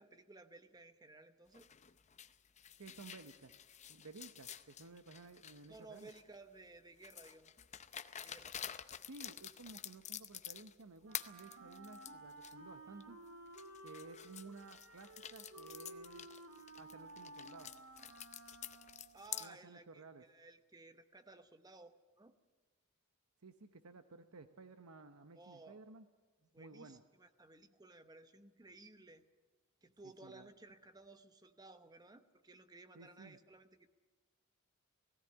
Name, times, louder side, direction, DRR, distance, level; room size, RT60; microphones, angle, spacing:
voice 1, 0.0-1.7 5.7-7.6 8.2-8.7 19.1-22.3 25.3-25.8 26.5-29.2 29.8-33.9, right 2 dB, 20° right, 9 dB, 1.0 m, -58 dB
sound 1, 1.5-6.4 7.0-10.8 11.1-12.5 13.0-13.1 13.5-19.5, left 10 dB, 30° left, 0.6 m, -49 dB
voice 2, 2.8-3.5 3.9-6.1 9.0-13.2 13.8-16.3 16.8-17.7 19.4-20.2 23.4-26.1 26.6-27.0 30.2-30.5 32.9-33.4, right 3 dB, 85° right, 9 dB, 0.9 m, -55 dB
Wind instrument woodwind instrument, 11.0-19.2, right 1 dB, 70° right, 3.4 m, -55 dB
18.0 x 16.5 x 10.0 m, 1.3 s
head